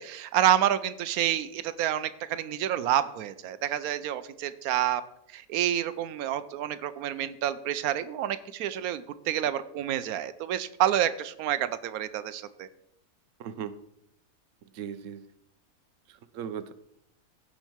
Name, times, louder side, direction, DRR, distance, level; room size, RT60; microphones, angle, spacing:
voice 1, 0.0-5.0 5.3-12.7, right 11 dB, 90° right, 13 dB, 1.1 m, -28 dB
voice 2, 13.4-13.8 14.7-15.2 16.1-16.7, right 8 dB, 65° right, 12 dB, 1.0 m, -37 dB
16.0 x 5.4 x 4.6 m, 0.77 s
omnidirectional pair, 1.5 m